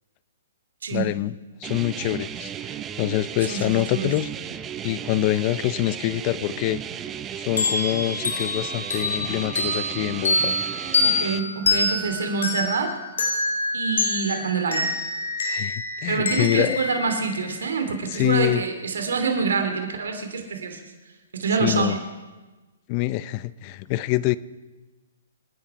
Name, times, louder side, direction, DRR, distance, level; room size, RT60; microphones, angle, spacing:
voice 1, 0.9-4.3 4.8-6.8 7.3-10.5 15.4-16.8 18.1-18.6 21.6-21.9 22.9-24.4, left 16 dB, 35° left, 18 dB, 0.6 m, -25 dB
sound 1, 1.6-11.4, right 9 dB, 20° right, 0.8 m, -35 dB
voice 2, 3.4-4.1 11.0-13.0 13.7-14.9 16.1-20.8 21.3-22.0, right 5 dB, 75° right, 5 dB, 2.9 m, -26 dB
sound 2, 7.6-17.8, left 3 dB, 85° left, 4.3 m, -26 dB
26.5 x 10.0 x 5.0 m, 1.2 s
hypercardioid pair, 140°, 0 cm